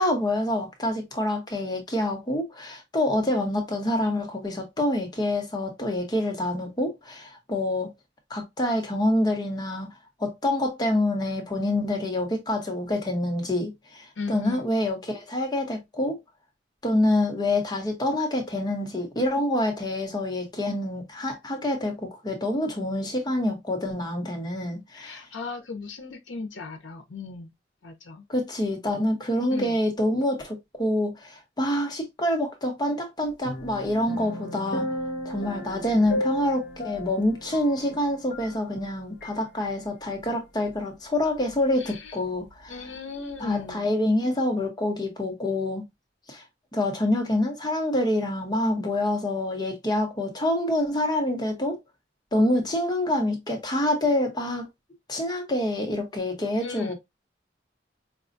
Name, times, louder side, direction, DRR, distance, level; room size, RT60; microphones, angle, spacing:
voice 1, 0.0-7.9 8.3-9.9 10.2-16.2 16.8-25.2 28.3-34.9 35.2-42.8 43.4-45.8 46.3-46.4 46.7-51.8 52.3-54.7 55.1-56.9, left 1 dB, 20° left, 0.9 m, -26 dB
voice 2, 14.2-14.7 24.9-27.5 27.8-28.2 29.5-29.8 41.8-42.2 42.7-43.9 56.6-56.9, left 4 dB, 80° left, 0.7 m, -36 dB
sound 1, 33.4-38.9 39.2-39.4, left 1 dB, 60° left, 1.0 m, -34 dB
5.1 x 2.3 x 2.5 m
head